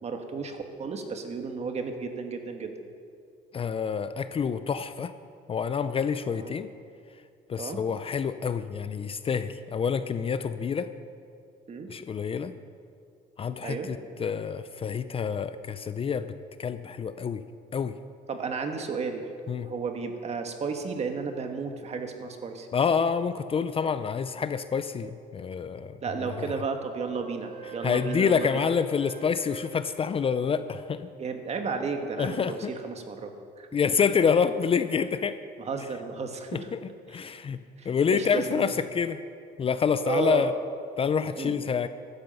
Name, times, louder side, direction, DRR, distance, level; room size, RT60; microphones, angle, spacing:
voice 1, 0.0-2.7 6.4-6.5 7.6-7.8 11.7-11.9 13.6-13.9 18.3-19.2 19.6-22.7 26.0-28.5 31.2-33.3 33.6-33.7 35.6-36.7 37.8-38.7 40.0-40.5 41.4-41.6, right 4 dB, 40° right, 5 dB, 1.7 m, -33 dB
voice 2, 3.5-5.1 5.5-6.7 7.5-10.9 11.9-12.5 13.4-16.3 16.6-17.4 17.7-18.0 19.5-19.7 22.7-26.5 27.7-31.1 32.2-32.7 33.7-35.4 36.5-36.8 37.1-37.6 37.8-39.2 39.6-40.5 41.0-41.9, left 6 dB, 35° left, 12 dB, 0.5 m, -27 dB
Wind instrument woodwind instrument, 26.4-30.6, right 6 dB, 65° right, 1.8 m, -45 dB
15.0 x 12.5 x 5.5 m, 2.3 s
cardioid pair, 110°, 17 cm